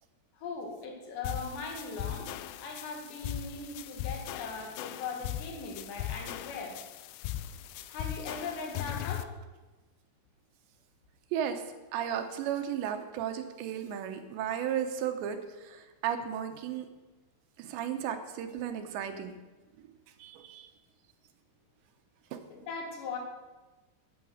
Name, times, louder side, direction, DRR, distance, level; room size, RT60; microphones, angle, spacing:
voice 1, 0.4-2.3 2.6-6.8 7.9-9.3 22.5-23.2, left 4 dB, 70° left, 2 dB, 4.0 m, -39 dB
sound 1, 1.2-9.2, left 12 dB, 85° left, 2.2 m, -39 dB
voice 2, 11.3-11.6 11.9-16.9 17.6-19.3 20.2-20.7 22.3-22.4, right 9 dB, 75° right, 7 dB, 3.0 m, -34 dB
13.5 x 9.1 x 6.4 m, 1.2 s
omnidirectional pair, 5.3 m